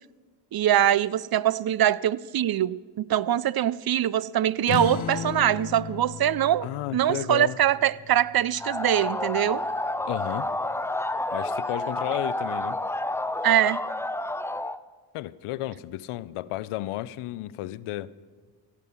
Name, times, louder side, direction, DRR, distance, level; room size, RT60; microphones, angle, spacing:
voice 1, 0.5-6.7 6.9-9.6 13.4-13.8, right 11 dB, 50° right, 0.5 m, -23 dB
sound 1, 4.7-9.7, left 7 dB, 70° left, 1.1 m, -36 dB
voice 2, 6.6-7.6 10.1-10.5 11.3-12.8 15.1-18.1, left 15 dB, 90° left, 0.5 m, -33 dB
sound 2, 8.6-14.8, left 2 dB, 5° left, 0.4 m, -30 dB
16.0 x 8.3 x 6.9 m
supercardioid pair, 50°, 49 cm